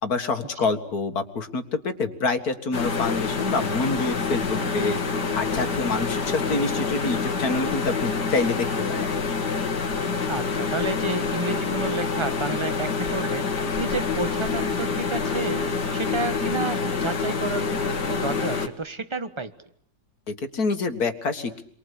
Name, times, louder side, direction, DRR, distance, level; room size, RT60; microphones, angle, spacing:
voice 1, 0.0-5.0 5.3-9.1 20.3-21.6, left 3 dB, 60° left, 7 dB, 2.3 m, -27 dB
sound 1, 2.7-18.7, left 5 dB, 80° left, 2.4 m, -27 dB
Sliding door, 3.9-6.9, right 2 dB, 85° right, 5.4 m, -44 dB
voice 2, 10.3-13.4 13.8-15.6 15.9-19.5, right 2 dB, 20° right, 11 dB, 1.3 m, -30 dB
30.0 x 23.5 x 8.4 m, 0.65 s
omnidirectional pair, 1.8 m